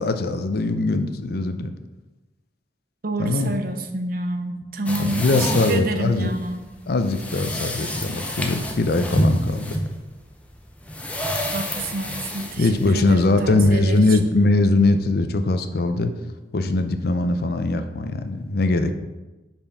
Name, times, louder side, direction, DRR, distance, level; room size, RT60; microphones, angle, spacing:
voice 1, 0.0-1.7 3.2-3.5 5.0-6.3 6.9-9.8 12.6-16.1 16.5-18.9, left 2 dB, 60° left, 8 dB, 0.5 m, -21 dB
voice 2, 3.0-6.6 11.5-14.2, right 2 dB, 55° right, 6 dB, 0.7 m, -28 dB
sound 1, 4.9-13.5, equal, 10° left, 0.6 m, -28 dB
5.6 x 4.4 x 5.3 m, 1.1 s
head